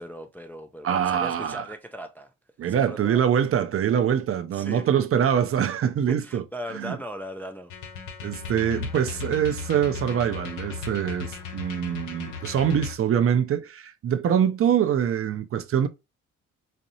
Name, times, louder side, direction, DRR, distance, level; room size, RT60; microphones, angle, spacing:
voice 1, 0.0-2.3 2.6-3.3 4.5-4.9 6.1-7.7, equal, 5° left, 0.3 m, -38 dB
voice 2, 0.8-1.6 2.6-6.4 6.7-7.0 8.2-15.9, right 9 dB, 50° right, 0.5 m, -24 dB
sound 1, 7.7-13.0, left 6 dB, 80° left, 0.8 m, -36 dB
4.2 x 2.6 x 2.7 m
cardioid pair, 90°, 30 cm